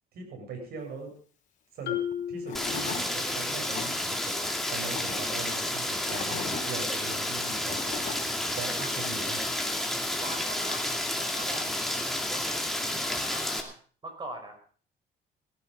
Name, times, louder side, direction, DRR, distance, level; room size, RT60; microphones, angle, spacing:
voice 1, 0.1-1.1 1.7-2.0 2.3-7.8 8.5-9.4 11.4-11.5, right 4 dB, 65° right, 2 dB, 7.5 m, -40 dB
Marimba xylophone, 1.9-3.6, left 10 dB, 75° left, 2.7 m, -35 dB
Tools / Wood, 2.1-2.2 2.5-3.0 3.5-3.9 4.6-5.2 5.8-6.6 7.4-8.2, left 6 dB, 45° left, 3.8 m, -38 dB
Rain, 2.5-13.6, left 1 dB, ahead, 2.5 m, -31 dB
voice 2, 7.9-8.4 10.2-10.8 11.2-11.7 12.3-12.8 13.1-13.8 14.0-14.6, right 2 dB, 25° right, 5 dB, 5.1 m, -42 dB
18.0 x 11.5 x 5.4 m, 0.43 s
cardioid pair, 110°, 17 cm